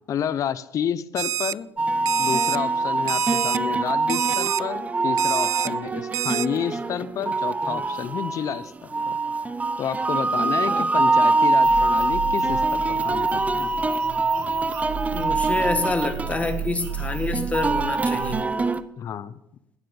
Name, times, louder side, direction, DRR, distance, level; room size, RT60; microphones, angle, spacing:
voice 1, 0.1-1.7 2.2-8.7 9.1-9.2 9.8-13.7 19.0-19.4, left 9 dB, 50° left, 17 dB, 0.7 m, -30 dB
Alarm, 1.2-1.5 2.1-2.6 3.1-3.6 4.1-4.6 5.2-5.7 6.1-6.5, right 13 dB, 55° right, 0.3 m, -26 dB
oud and ney, 1.8-18.8, right 3 dB, 20° right, 0.7 m, -24 dB
sound 1, 11.6-18.4, right 6 dB, 85° right, 2.3 m, -33 dB
voice 2, 15.1-18.5, left 3 dB, 20° left, 7 dB, 1.5 m, -28 dB
11.5 x 9.2 x 7.0 m, 0.85 s
supercardioid pair, 90°, 7 cm